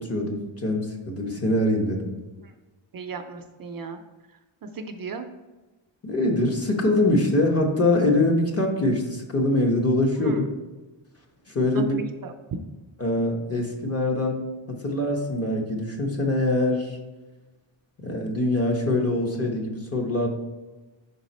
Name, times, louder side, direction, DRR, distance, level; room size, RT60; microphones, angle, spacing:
voice 1, 0.0-2.1 6.0-10.5 11.5-12.0 13.0-17.0 18.0-20.3, left 1 dB, 30° left, 1 dB, 1.0 m, -23 dB
voice 2, 2.9-4.0 4.6-5.3 10.2-10.4 11.8-12.3, right 4 dB, 50° right, 6 dB, 0.5 m, -36 dB
5.8 x 4.0 x 4.2 m, 1.2 s
wide cardioid pair, 140°, 46 cm